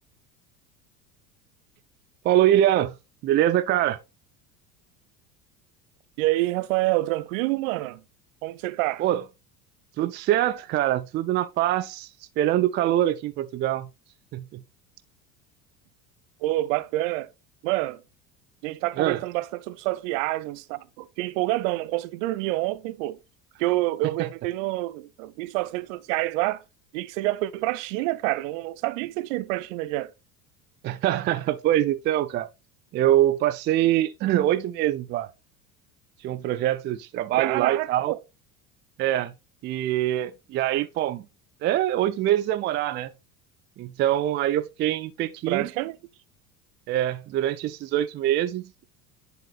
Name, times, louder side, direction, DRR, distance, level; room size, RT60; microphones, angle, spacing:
voice 1, 2.2-2.9 3.2-4.0 9.0-9.2 10.0-12.1 12.4-13.9 14.3-14.6 19.0-19.2 24.2-24.3 30.8-32.5 32.9-35.3 36.2-38.2 39.0-39.3 39.6-41.2 41.6-43.1 43.8-45.7 46.9-48.8, right 13 dB, 25° right, 0.4 m, -24 dB
voice 2, 6.2-8.0 8.4-9.0 16.4-17.3 17.6-18.0 18.6-23.2 23.6-26.6 26.9-30.1 37.4-38.1 45.5-46.0, right 18 dB, 50° right, 0.7 m, -27 dB
10.5 x 4.7 x 2.4 m
figure-of-eight pair, 70°, 49 cm